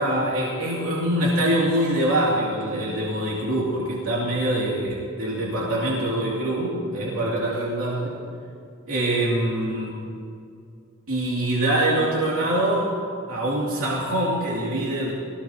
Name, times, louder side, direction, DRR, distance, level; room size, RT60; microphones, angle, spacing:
voice 1, 0.0-8.1 8.9-9.9 11.1-12.9 13.3-15.1, right 1 dB, 75° right, -6 dB, 2.9 m, -24 dB
23.0 x 16.0 x 3.0 m, 2.3 s
head